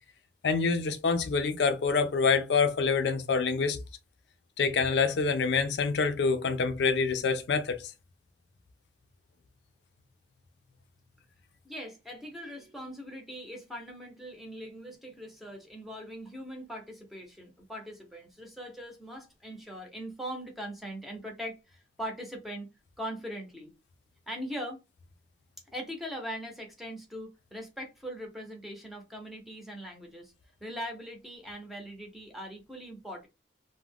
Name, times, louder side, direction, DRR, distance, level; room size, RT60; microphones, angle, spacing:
voice 1, 0.4-3.8 4.6-7.8, left 5 dB, 80° left, 0.4 m, -26 dB
voice 2, 11.6-22.7 23.0-23.7 24.3-24.8 25.7-30.3 30.6-33.3, equal, ahead, 0.6 m, -41 dB
2.3 x 2.1 x 3.4 m
head